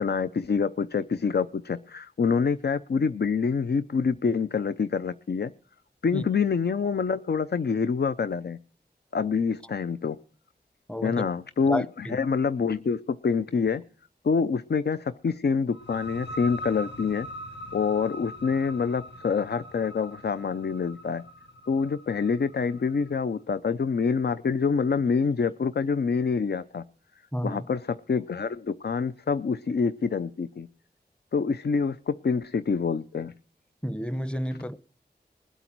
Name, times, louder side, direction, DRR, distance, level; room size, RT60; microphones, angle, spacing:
voice 1, 0.0-5.5 6.0-8.6 9.1-10.2 11.0-13.8 14.2-17.3 17.7-21.2 21.7-26.8 27.4-30.7 31.3-33.3, left 5 dB, 70° left, 0.5 m, -26 dB
voice 2, 10.9-11.2 11.7-12.2 27.3-27.6 33.8-34.8, equal, 5° left, 0.8 m, -31 dB
sound 1, 15.7-23.2, equal, 85° left, 1.1 m, -42 dB
21.0 x 8.1 x 4.5 m
wide cardioid pair, 70°, 18 cm